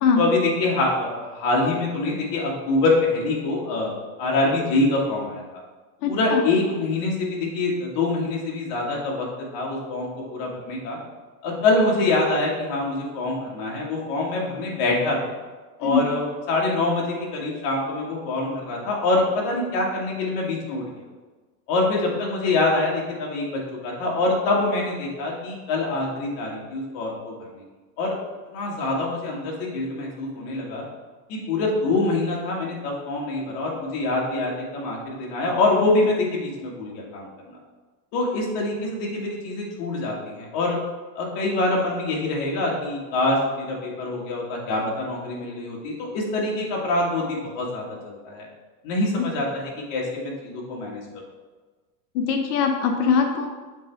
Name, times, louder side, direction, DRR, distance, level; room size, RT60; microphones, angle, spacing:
voice 1, 0.2-5.6 6.1-9.3 9.5-11.0 11.4-15.2 15.8-20.8 21.7-27.6 28.0-28.2 28.5-30.8 31.3-37.6 38.1-40.8 41.2-48.5 48.8-51.0, left 2 dB, 45° left, -2 dB, 1.8 m, -25 dB
voice 2, 6.0-6.4 15.8-16.0 49.2-49.3 52.1-53.5, left 6 dB, 65° left, 3 dB, 0.9 m, -22 dB
7.1 x 3.5 x 4.5 m, 1.3 s
supercardioid pair, 145°, 49 cm